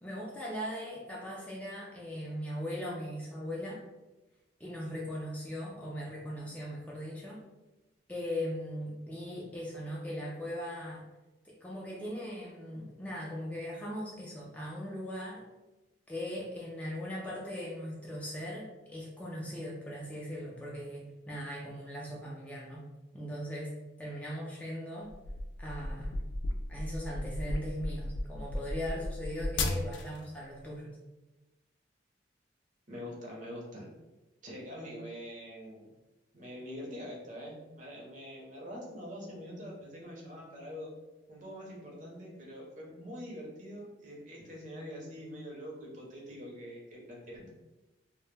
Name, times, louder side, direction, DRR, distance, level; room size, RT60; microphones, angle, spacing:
voice 1, 0.0-3.8 4.6-7.4 8.1-11.1 11.4-15.4 16.1-22.9 23.1-25.1 25.6-26.2 26.7-31.0, equal, 10° left, -4 dB, 0.3 m, -39 dB
sound 1, 25.1-30.2, left 1 dB, 90° left, 0.3 m, -35 dB
voice 2, 32.9-33.9 34.4-35.9 36.3-40.9 41.3-47.4, equal, 45° right, -2 dB, 0.7 m, -44 dB
2.1 x 2.0 x 3.1 m, 1.1 s
head